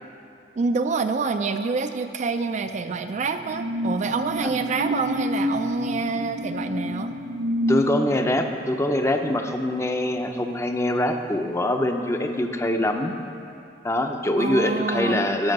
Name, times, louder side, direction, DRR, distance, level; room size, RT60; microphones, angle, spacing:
voice 1, 0.6-7.1 14.4-15.2, right 4 dB, 40° right, 8 dB, 0.4 m, -27 dB
sound 1, 2.6-11.6 11.9-12.2, equal, 80° right, 0.8 m, -30 dB
voice 2, 7.7-13.1 13.8-15.5, left 1 dB, 15° left, 5 dB, 0.6 m, -24 dB
12.5 x 5.6 x 6.6 m, 2.5 s
head